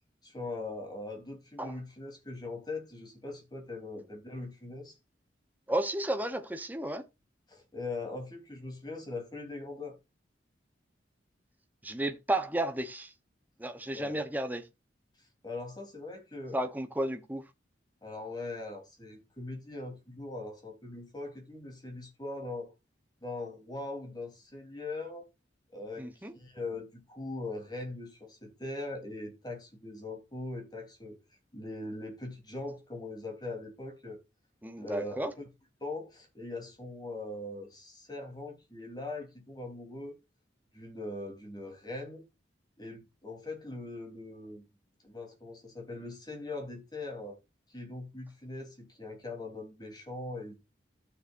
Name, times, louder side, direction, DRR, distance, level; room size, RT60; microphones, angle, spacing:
voice 1, 0.2-5.0 7.5-10.0 13.9-14.2 15.4-16.6 18.0-22.7 23.2-25.3 25.7-31.2 31.5-34.2 34.8-35.4 35.8-40.2 40.7-42.2 42.8-44.6 45.0-47.4 47.7-50.5, left 2 dB, 25° left, 3.4 m, -41 dB
voice 2, 5.7-7.0 11.8-13.1 13.6-14.6 16.5-17.4 26.0-26.3 34.6-35.3, right 1 dB, 10° right, 0.9 m, -33 dB
15.0 x 6.9 x 2.5 m
head